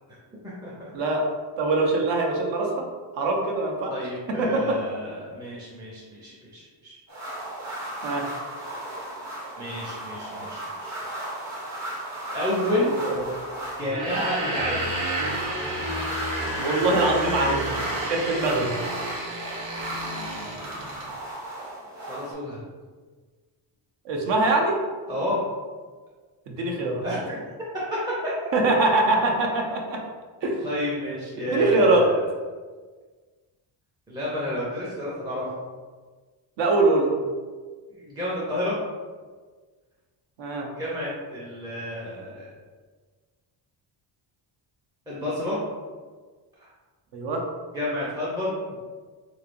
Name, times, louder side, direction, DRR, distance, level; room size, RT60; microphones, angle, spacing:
voice 1, 0.4-0.9 3.9-7.0 9.6-11.0 12.3-12.9 13.8-14.9 21.1-21.2 22.0-22.6 25.1-25.4 27.0-27.4 28.2-28.3 30.6-32.1 34.1-35.5 37.9-38.8 40.6-42.5 45.1-45.6 46.6-46.7 47.7-48.6, left 1 dB, 10° right, -7 dB, 0.5 m, -30 dB
voice 2, 0.9-1.2 1.6-2.9 3.1-3.9 4.4-4.8 8.0-8.3 12.8-13.2 16.6-18.7 24.0-24.8 26.5-27.0 28.5-30.0 30.4-30.6 31.4-32.1 36.6-37.2 40.4-40.7 47.1-47.4, right 2 dB, 65° right, 1 dB, 0.8 m, -23 dB
sound 1, 7.1-22.3, right 1 dB, 35° right, 0.9 m, -36 dB
sound 2, 13.9-21.1, right 1 dB, 90° right, 1.0 m, -31 dB
3.6 x 3.2 x 2.5 m, 1.4 s
cardioid pair, 150°, 47 cm